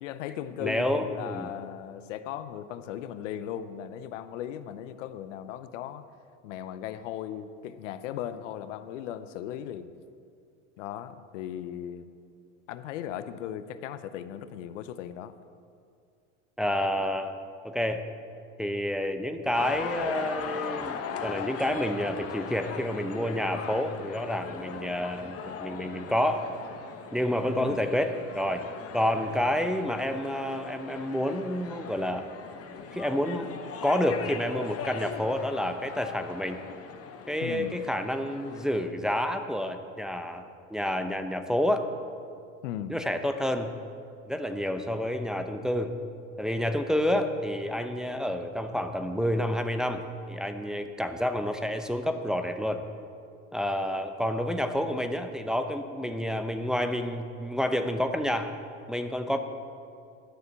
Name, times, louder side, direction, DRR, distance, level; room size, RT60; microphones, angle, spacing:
voice 1, 0.0-6.1 6.4-9.9 10.8-12.1 12.7-15.3 27.5-27.8 37.4-37.7 42.6-42.9, left 10 dB, 80° left, 12 dB, 0.7 m, -37 dB
voice 2, 0.6-1.5 16.6-17.4 17.6-18.0 18.6-26.4 27.1-28.6 28.9-32.3 32.9-36.6 37.3-41.9 42.9-43.7 44.3-46.0 46.4-52.8 53.5-58.5 58.9-59.4, equal, ahead, 6 dB, 0.8 m, -29 dB
sound 1, 19.5-38.9, left 6 dB, 40° left, 1.1 m, -39 dB
11.5 x 6.6 x 8.2 m, 2.4 s
hypercardioid pair, 85°, 36 cm